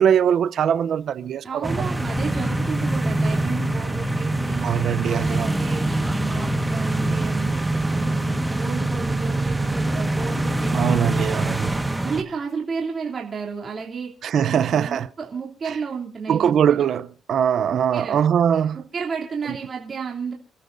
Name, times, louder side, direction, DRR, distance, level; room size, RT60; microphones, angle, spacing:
voice 1, 0.0-1.7 4.6-5.5 10.7-11.7 14.2-15.1 16.3-18.8, right 8 dB, 65° right, 0.7 m, -21 dB
voice 2, 1.4-4.7 5.1-7.5 7.9-11.7 12.0-14.1 14.5-16.9 17.7-18.2 18.7-20.3, right 5 dB, 45° right, 3.1 m, -32 dB
sound 1, 1.6-12.2, right 1 dB, 10° right, 1.5 m, -24 dB
29.5 x 13.0 x 2.7 m
cardioid pair, 90°, 0 cm